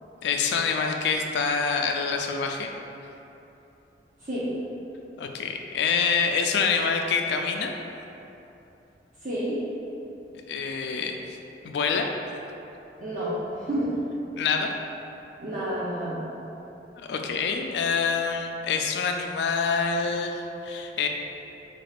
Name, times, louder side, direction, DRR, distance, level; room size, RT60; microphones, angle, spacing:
voice 1, 0.2-2.7 5.2-7.7 10.5-11.4 11.6-12.1 14.4-14.7 17.0-21.1, left 5 dB, 70° left, 3 dB, 0.3 m, -26 dB
voice 2, 9.2-9.5 13.0-13.9 15.4-16.2, equal, 45° right, -10 dB, 0.6 m, -30 dB
4.1 x 2.4 x 3.3 m, 2.9 s
head